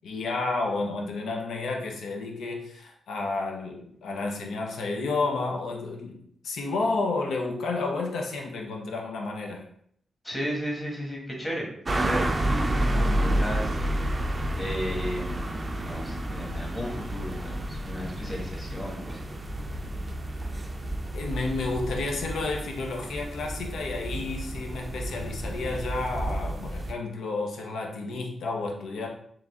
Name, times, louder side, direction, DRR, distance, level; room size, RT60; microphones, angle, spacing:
voice 1, 0.0-9.6 21.1-29.1, left 3 dB, 90° left, 1 dB, 0.7 m, -31 dB
voice 2, 10.2-11.7 12.0-12.9 13.2-13.7 14.5-19.3, equal, 15° left, -2 dB, 1.2 m, -34 dB
sound 1, 11.8-26.9, right 1 dB, 25° right, 0.4 m, -30 dB
3.7 x 3.1 x 3.5 m, 0.66 s
wide cardioid pair, 125°, 0 cm